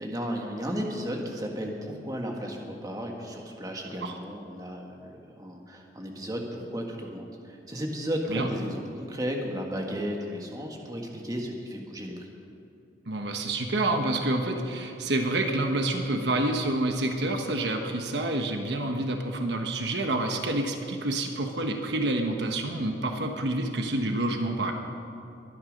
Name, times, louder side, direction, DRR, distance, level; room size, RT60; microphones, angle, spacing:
voice 1, 0.0-12.3, equal, 20° right, 1 dB, 1.6 m, -34 dB
voice 2, 13.1-24.7, right 2 dB, 65° right, 4 dB, 1.2 m, -28 dB
22.5 x 9.7 x 5.2 m, 2.7 s
head